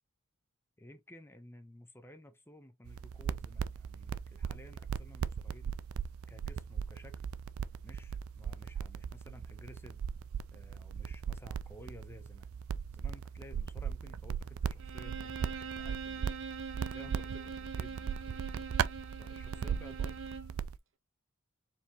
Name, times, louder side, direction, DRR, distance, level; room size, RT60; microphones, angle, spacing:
voice 1, 0.8-5.8 6.3-7.3 7.8-10.0 10.5-12.5 12.9-16.3 16.9-18.4 19.2-20.2, left 1 dB, 10° left, 0.7 m, -54 dB
sound 1, 2.9-20.8, right 7 dB, 85° right, 0.4 m, -38 dB
Bowed string instrument, 14.8-20.6, right 5 dB, 65° right, 0.8 m, -43 dB
4.7 x 3.4 x 2.9 m
head